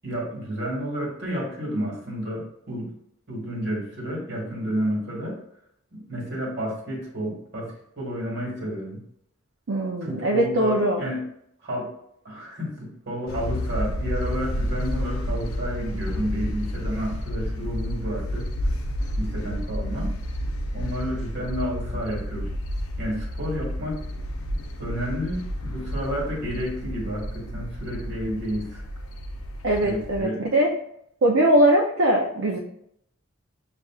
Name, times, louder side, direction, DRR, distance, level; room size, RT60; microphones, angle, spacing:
voice 1, 0.0-2.9 3.3-5.4 5.9-9.0 10.0-11.2 11.6-11.9 12.2-18.5 19.2-20.1 20.7-22.5 23.0-24.0 24.8-28.8 29.8-30.4, equal, 50° right, -3 dB, 1.4 m, -31 dB
voice 2, 9.7-11.0 29.6-30.7 31.2-32.6, right 1 dB, 70° right, 0 dB, 0.5 m, -21 dB
sound 1, 13.3-30.2, equal, 80° left, 0.5 m, -30 dB
6.5 x 2.5 x 2.3 m, 0.74 s
head